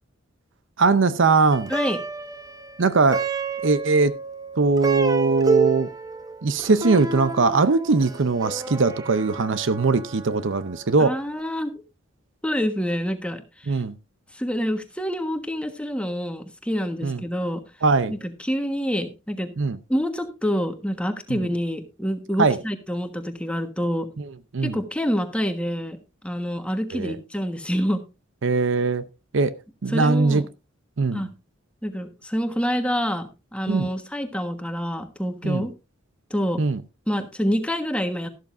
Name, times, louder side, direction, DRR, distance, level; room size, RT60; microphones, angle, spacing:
voice 1, 0.8-1.7 2.8-3.2 3.6-4.1 4.6-5.9 6.4-11.2 13.7-13.9 17.0-17.2 17.8-18.1 19.6-19.8 21.3-21.4 22.4-22.6 24.2-24.8 26.9-27.2 28.4-29.1 29.3-29.5 29.8-30.4 31.0-31.3 33.7-33.9 35.4-35.6 36.6-36.8, right 4 dB, 65° right, 0.7 m, -21 dB
Plucked string instrument, 1.5-10.9, right 4 dB, 20° right, 0.9 m, -30 dB
voice 2, 11.0-11.7 12.4-13.8 14.3-17.6 18.1-19.5 19.9-24.1 24.6-26.0 26.2-28.0 29.9-30.4 31.1-31.3 31.8-35.7 36.3-36.6 37.1-38.3, equal, 5° left, 1.4 m, -27 dB
13.5 x 12.0 x 2.6 m
head